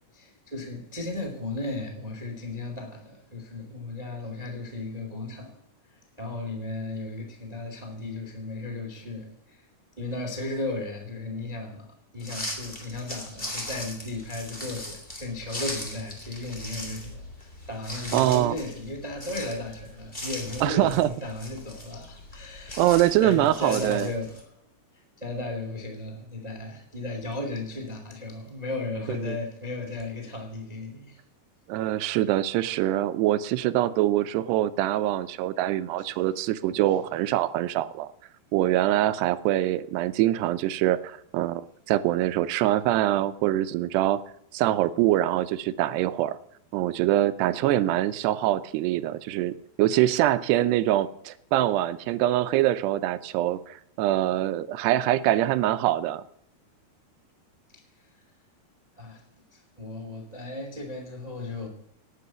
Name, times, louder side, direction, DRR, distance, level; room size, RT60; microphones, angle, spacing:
voice 1, 0.1-5.6 6.2-9.6 10.0-22.9 23.2-24.5 25.2-31.2 32.0-32.2 36.0-36.1 36.7-36.8 57.7-57.8 59.0-59.2 59.5-61.7, left 2 dB, 15° right, 1.3 m, -35 dB
sound 1, 12.2-24.4, left 1 dB, 15° left, 2.5 m, -39 dB
voice 2, 18.1-18.5 20.6-21.1 22.8-24.1 29.2-29.4 31.7-38.1 38.5-44.2 44.5-46.4 46.7-56.2, right 14 dB, 85° right, 2.8 m, -24 dB
18.5 x 8.6 x 7.0 m
omnidirectional pair, 4.7 m